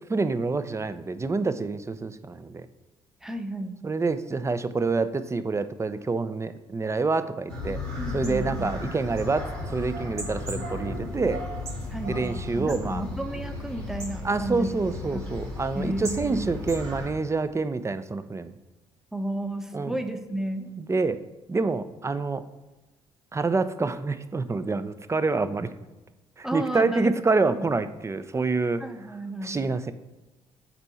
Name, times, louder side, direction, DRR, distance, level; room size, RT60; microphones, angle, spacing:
voice 1, 0.1-2.7 3.8-7.8 8.1-11.4 12.1-13.0 14.2-18.5 19.7-19.9 20.8-21.2 21.5-22.5 23.3-25.7 26.4-28.8 29.4-29.9, right 3 dB, 20° right, 13 dB, 0.5 m, -27 dB
voice 2, 3.2-3.8 8.0-8.8 11.9-14.7 15.1-15.3 15.7-16.6 19.1-20.7 26.4-27.1 27.5-27.7 28.8-29.6, right 1 dB, 5° right, 7 dB, 0.8 m, -33 dB
sound 1, 7.5-17.1, left 2 dB, 85° right, 1.5 m, -34 dB
6.8 x 4.5 x 5.6 m, 1.1 s
hypercardioid pair, 45°, 13 cm